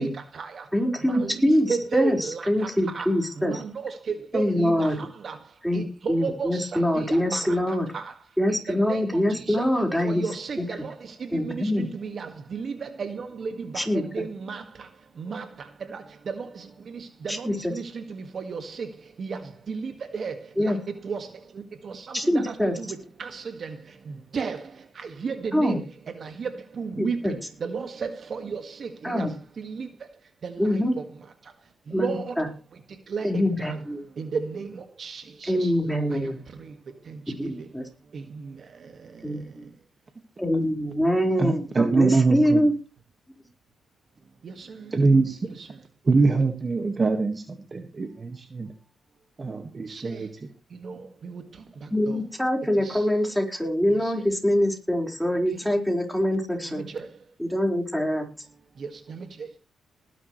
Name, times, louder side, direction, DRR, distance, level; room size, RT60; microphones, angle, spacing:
voice 1, 0.0-0.6 1.0-3.1 3.4-5.4 5.7-7.6 7.9-8.1 8.5-9.7 10.0-14.6 15.2-15.5 15.9-18.9 19.2-19.4 19.7-20.7 21.0-21.3 21.8-23.8 24.1-24.6 25.0-25.8 26.2-29.3 29.6-29.9 30.4-31.0 31.9-32.4 33.1-33.8 34.2-35.7 36.1-36.2 37.1-37.5 38.1-38.5 44.4-44.8 45.6-45.7 49.9-50.3 50.8-51.4 52.1-52.2 52.8-53.0 54.0-54.1 55.5-55.6 56.7-57.1 58.8-59.3, right 5 dB, 55° right, 1.9 m, -34 dB
voice 2, 0.7-1.7 1.9-2.2 2.5-3.6 4.3-5.0 5.6-5.8 6.1-7.9 8.4-10.2 11.3-11.9 13.8-14.0 17.3-17.5 20.6-20.8 22.1-22.7 25.5-25.8 27.0-27.3 29.0-29.3 30.6-30.9 31.9-32.1 32.4-32.5 33.2-34.0 35.5-36.4 37.4-37.8 39.2-39.6 40.4-42.7 51.9-56.9 57.5-58.5, equal, ahead, 4.8 m, -24 dB
voice 3, 41.4-42.6 44.9-45.4 46.1-48.7 49.4-50.3, right 3 dB, 35° right, 1.8 m, -23 dB
19.5 x 11.0 x 3.2 m
cardioid pair, 85°, 0 cm